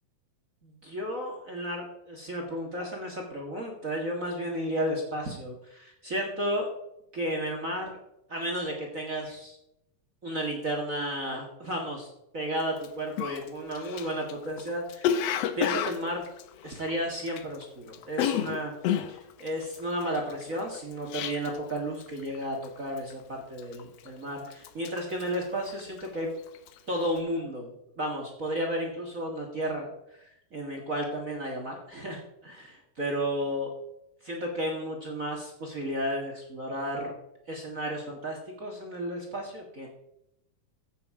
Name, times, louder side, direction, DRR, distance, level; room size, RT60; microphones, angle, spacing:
voice 1, 0.6-6.7 7.1-8.0 8.3-9.6 10.2-15.1 15.5-16.2 16.6-18.7 19.1-26.3 26.9-29.9 30.2-33.7 34.2-37.1 37.5-39.9, equal, 35° right, 0 dB, 1.5 m, -33 dB
Cough, 12.8-12.9 13.2-17.6 17.9-21.7 22.0-22.4 22.6-23.1 23.6-24.2 24.5-26.2 26.5-26.8, left 9 dB, 75° left, 1.5 m, -31 dB
15.0 x 7.0 x 4.8 m, 0.84 s
omnidirectional pair, 3.8 m